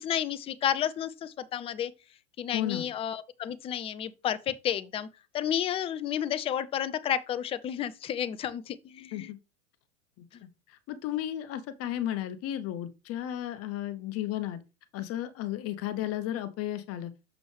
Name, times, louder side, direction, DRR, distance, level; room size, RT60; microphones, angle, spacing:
voice 1, 0.0-1.9 2.4-5.1 5.3-9.3, left 10 dB, 15° left, 0.4 m, -31 dB
voice 2, 2.5-2.9 9.1-9.4 10.2-14.6 14.9-17.1, left 12 dB, 35° left, 1.0 m, -34 dB
6.9 x 6.1 x 3.3 m
hypercardioid pair, 100°, 43 cm